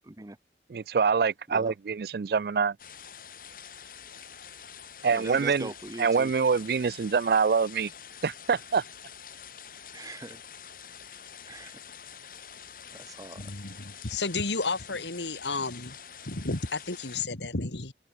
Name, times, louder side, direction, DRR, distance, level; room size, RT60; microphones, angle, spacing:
voice 1, 0.7-2.8 5.0-5.7 6.0-7.9 8.2-8.8, right 5 dB, 60° right, 0.4 m, -25 dB
sound 1, 2.8-17.3, left 8 dB, 50° left, 4.5 m, -47 dB
voice 2, 5.1-6.3 9.9-10.4 11.5-11.8 13.0-13.4, right 2 dB, 20° right, 0.7 m, -41 dB
voice 3, 13.4-16.0 16.2-17.9, left 3 dB, 85° left, 2.5 m, -32 dB
head